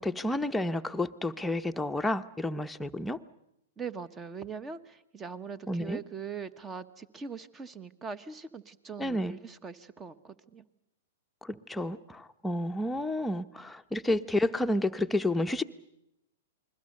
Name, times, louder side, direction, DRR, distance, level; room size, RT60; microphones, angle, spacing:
voice 1, 0.0-3.2 5.7-6.0 9.0-9.3 11.4-15.6, left 1 dB, 5° left, 7 dB, 0.9 m, -30 dB
voice 2, 3.8-10.6, right 6 dB, 20° right, 15 dB, 1.3 m, -41 dB
29.0 x 21.5 x 6.6 m, 0.84 s
hypercardioid pair, 120°, 0 cm